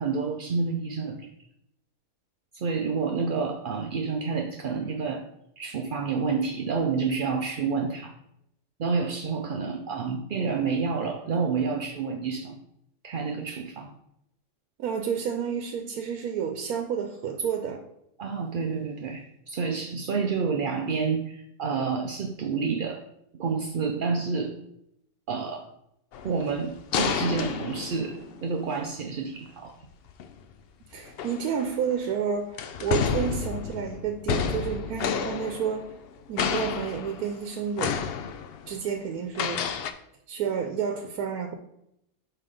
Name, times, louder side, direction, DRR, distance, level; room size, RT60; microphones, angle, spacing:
voice 1, 0.0-1.3 2.5-5.2 5.6-8.1 8.8-12.6 13.0-13.9 18.2-23.0 23.3-24.6 25.3-25.7 26.2-29.7, right 5 dB, 60° right, 3 dB, 0.5 m, -29 dB
voice 2, 14.8-17.8 30.9-32.5 32.8-35.9 36.3-38.0 38.7-39.7 40.3-41.5, right 7 dB, 90° right, 4 dB, 1.2 m, -30 dB
sound 1, 26.1-28.7 30.1-30.3 31.1-32.0 32.6-36.1 36.4-37.4 37.8-38.7 39.4-39.9, left 7 dB, 65° left, 0.6 m, -30 dB
5.8 x 4.5 x 5.1 m, 0.78 s
omnidirectional pair, 1.5 m